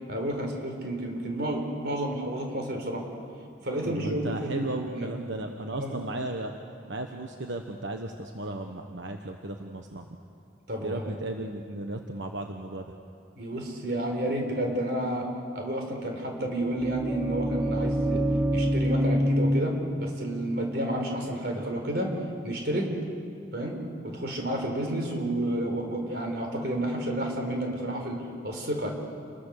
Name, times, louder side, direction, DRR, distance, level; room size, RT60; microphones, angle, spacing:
voice 1, 0.1-3.0 3.6-5.1 5.8-6.0 10.7-11.1 13.4-15.3 15.5-18.2 18.5-22.1 22.4-22.9 23.5-23.8 24.0-28.9, right 1 dB, 55° right, 2 dB, 4.7 m, -30 dB
voice 2, 3.8-6.6 6.9-10.1 10.8-12.9, right 2 dB, 85° right, 3 dB, 1.3 m, -35 dB
sound 1, 16.5-22.3, equal, 10° right, 1.2 m, -28 dB
29.0 x 22.0 x 6.7 m, 2.4 s
head